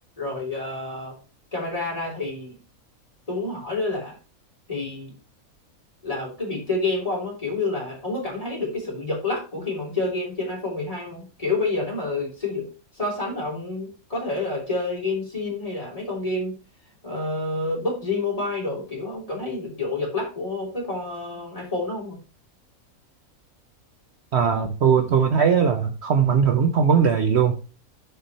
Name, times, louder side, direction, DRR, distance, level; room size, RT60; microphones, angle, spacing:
voice 1, 0.2-1.2 1.5-2.6 3.3-4.2 4.7-5.1 6.0-12.7 12.9-16.5 17.0-22.2, left 3 dB, 25° left, -3 dB, 3.4 m, -28 dB
voice 2, 24.3-27.6, right 7 dB, 55° right, 6 dB, 0.9 m, -19 dB
6.9 x 5.7 x 4.1 m, 0.33 s
omnidirectional pair, 1.5 m